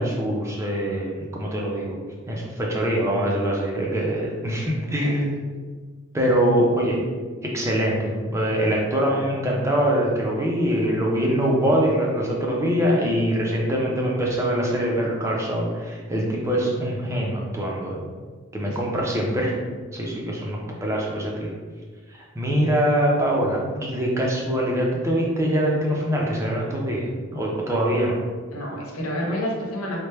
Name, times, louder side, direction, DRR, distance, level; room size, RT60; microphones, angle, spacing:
voice 1, 0.0-2.0 2.3-5.3 6.1-7.0 7.4-18.0 18.5-19.5 19.9-21.5 22.1-28.2, equal, 15° right, -3 dB, 0.5 m, -23 dB
voice 2, 4.7-5.1 18.6-18.8 28.5-30.0, equal, 90° left, -2 dB, 0.9 m, -29 dB
4.3 x 2.1 x 3.2 m, 1.5 s
head